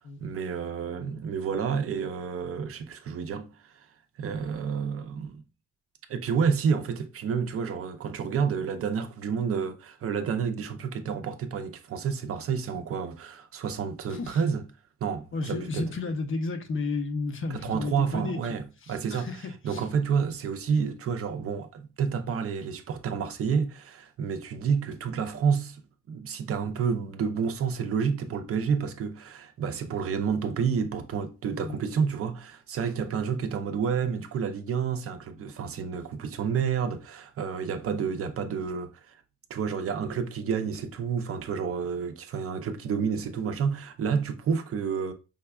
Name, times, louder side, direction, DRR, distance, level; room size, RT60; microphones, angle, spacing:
voice 1, 0.2-3.9 4.2-5.4 6.1-14.6 15.0-15.9 17.5-19.3 19.6-25.8 26.1-39.2 39.5-45.1, right 6 dB, 50° right, 0.5 m, -29 dB
voice 2, 14.1-14.4 15.3-19.9 31.6-31.8, left 3 dB, 40° left, 0.7 m, -33 dB
4.9 x 2.3 x 2.3 m
cardioid pair, 90°, 30 cm